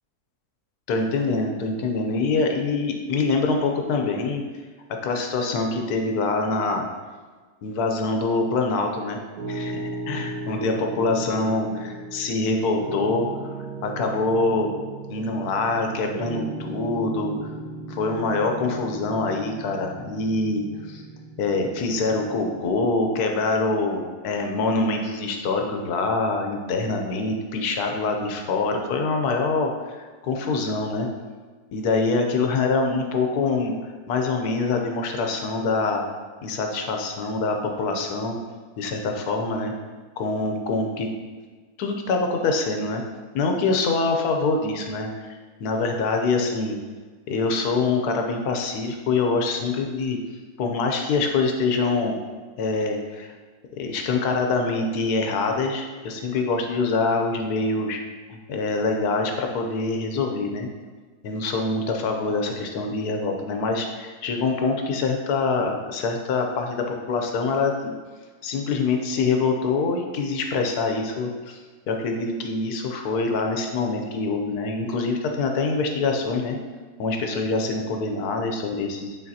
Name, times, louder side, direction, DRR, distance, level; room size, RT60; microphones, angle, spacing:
voice 1, 0.9-4.4 5.0-6.9 7.6-9.2 9.5-13.3 13.8-14.7 15.1-17.3 17.9-21.0 21.4-31.1 31.7-33.7 34.1-36.0 36.4-38.4 38.8-39.7 40.2-41.1 41.8-43.0 43.3-45.1 45.6-46.8 47.3-50.2 50.6-52.2 52.6-53.3 53.8-58.0 58.3-60.7 61.2-67.9 68.4-71.6 71.9-76.6 77.0-79.2, left 3 dB, 80° left, 3 dB, 1.3 m, -25 dB
Piano, 9.4-22.7, right 2 dB, 80° right, 1.6 m, -37 dB
8.8 x 3.8 x 2.8 m, 1.4 s
omnidirectional pair, 1.7 m